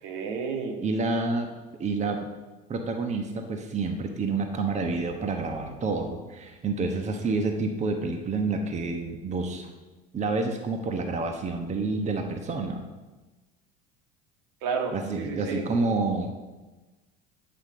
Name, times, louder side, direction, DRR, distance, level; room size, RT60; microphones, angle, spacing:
voice 1, 0.0-0.8 14.6-15.6, right 5 dB, 75° right, 3 dB, 1.6 m, -31 dB
voice 2, 0.8-1.5 1.8-2.3 2.7-9.7 10.1-12.8 14.9-16.3, right 3 dB, 35° right, 4 dB, 1.1 m, -28 dB
8.3 x 5.7 x 6.7 m, 1.2 s
supercardioid pair, 90°, 21 cm